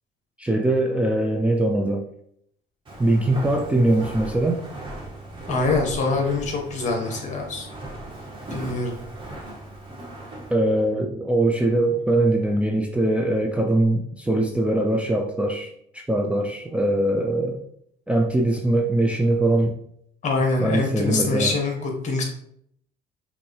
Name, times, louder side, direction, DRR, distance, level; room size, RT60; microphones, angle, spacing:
voice 1, 0.4-2.0 3.0-4.6 10.5-17.6 18.1-19.7 20.6-21.6, right 1 dB, 5° right, 1 dB, 0.5 m, -22 dB
Walk footsteps, 2.8-10.5, right 1 dB, 30° right, 1.6 m, -37 dB
voice 2, 5.5-7.7 8.5-9.0 20.2-22.2, left 3 dB, 45° left, 2 dB, 1.4 m, -24 dB
5.8 x 2.7 x 3.1 m, 0.69 s
cardioid pair, 110°, 17 cm